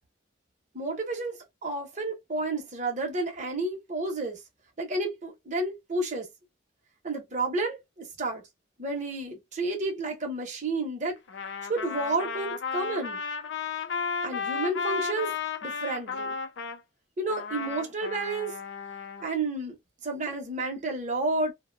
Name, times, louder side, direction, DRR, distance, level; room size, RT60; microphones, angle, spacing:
voice 1, 0.7-4.4 4.8-6.3 7.0-8.4 8.8-11.2 11.6-13.2 14.2-15.4 15.6-16.4 17.2-18.5 19.2-19.8 20.0-21.5, right 2 dB, 40° right, 0.8 m, -31 dB
Trumpet, 11.3-16.8 17.3-19.2, left 5 dB, 65° left, 0.5 m, -34 dB
2.6 x 2.2 x 2.6 m
head